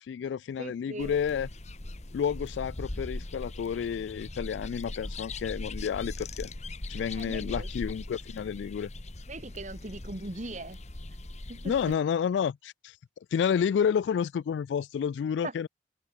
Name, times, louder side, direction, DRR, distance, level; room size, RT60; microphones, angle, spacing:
voice 1, 0.1-1.5 2.1-6.5 6.9-8.9 11.7-12.9 13.3-15.7, left 7 dB, 80° left, 0.3 m, -30 dB
voice 2, 0.6-1.2 7.2-7.7 9.3-10.8 11.5-11.8 15.4-15.5, right 2 dB, 45° right, 2.3 m, -39 dB
sound 1, 1.0-12.0, left 2 dB, 40° left, 1.4 m, -40 dB
head